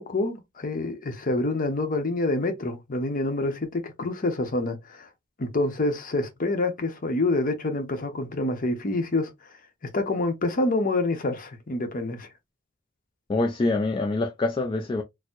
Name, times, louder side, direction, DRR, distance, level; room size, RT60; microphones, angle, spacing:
voice 1, 0.0-5.1 5.4-9.3 9.8-12.3, left 2 dB, 40° left, 0.7 m, -27 dB
voice 2, 13.3-15.0, left 2 dB, 25° left, 0.3 m, -25 dB
4.3 x 2.1 x 2.4 m
head